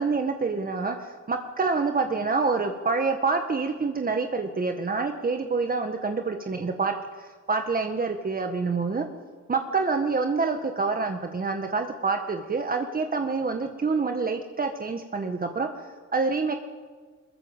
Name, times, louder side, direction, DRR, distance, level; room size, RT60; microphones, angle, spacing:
voice 1, 0.0-9.1 9.5-15.7 16.1-16.5, right 4 dB, 30° right, 5 dB, 1.7 m, -27 dB
22.0 x 21.5 x 7.4 m, 1.5 s
cardioid pair, 90°, 30 cm